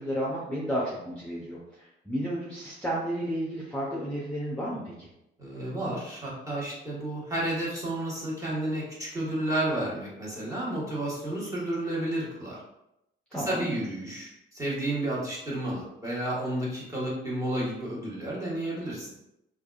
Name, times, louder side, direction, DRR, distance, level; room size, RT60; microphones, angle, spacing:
voice 1, 0.0-5.1 13.3-13.7, equal, 5° left, -6 dB, 0.7 m, -32 dB
voice 2, 5.4-12.6 13.3-19.1, right 1 dB, 15° right, -6 dB, 1.3 m, -31 dB
3.3 x 2.3 x 2.4 m, 0.85 s
cardioid pair, 90°, 20 cm